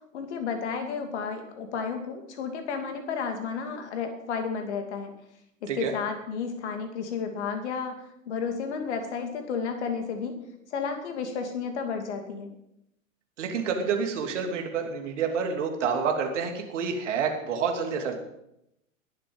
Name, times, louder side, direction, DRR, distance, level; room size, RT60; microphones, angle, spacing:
voice 1, 0.1-5.1 5.6-7.9 8.3-10.4 10.7-12.5, left 5 dB, 55° left, 6 dB, 2.6 m, -32 dB
voice 2, 13.4-18.2, right 6 dB, 60° right, 3 dB, 2.9 m, -28 dB
20.5 x 7.6 x 5.5 m, 0.82 s
figure-of-eight pair, 100°, 41 cm